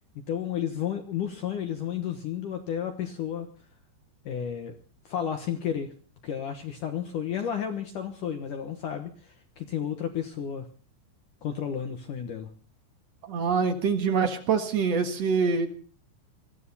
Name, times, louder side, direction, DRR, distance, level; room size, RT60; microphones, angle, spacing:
voice 1, 0.3-3.5 4.3-4.7 5.1-5.9 6.2-10.7 11.4-12.5, left 9 dB, 65° left, 6 dB, 2.1 m, -32 dB
voice 2, 13.2-15.7, right 5 dB, 55° right, 5 dB, 2.0 m, -25 dB
21.5 x 15.0 x 4.1 m, 0.40 s
omnidirectional pair, 5.2 m